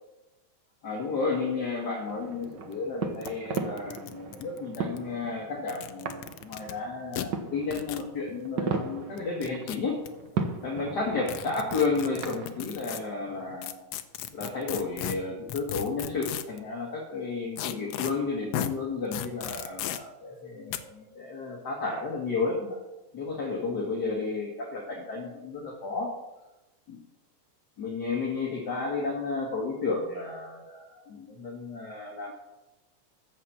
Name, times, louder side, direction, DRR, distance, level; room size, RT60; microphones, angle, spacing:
voice 1, 0.8-10.0 10.6-13.7 14.3-22.8 23.1-26.2 26.9-27.0 27.8-32.3, left 4 dB, 40° left, -2 dB, 1.7 m, -32 dB
sound 1, 2.1-13.6, right 5 dB, 75° right, 1.0 m, -37 dB
sound 2, 2.4-2.5 2.7-2.8 3.2-3.3 3.5-5.0 5.6-6.7 7.1-7.3 7.7-8.1 9.2-10.1 11.3-13.0 13.6-16.6 17.6-18.1 18.5-18.7 19.1-20.0 20.7-20.8, left 11 dB, 75° left, 1.4 m, -35 dB
14.0 x 5.9 x 7.1 m, 1.0 s
omnidirectional pair, 3.4 m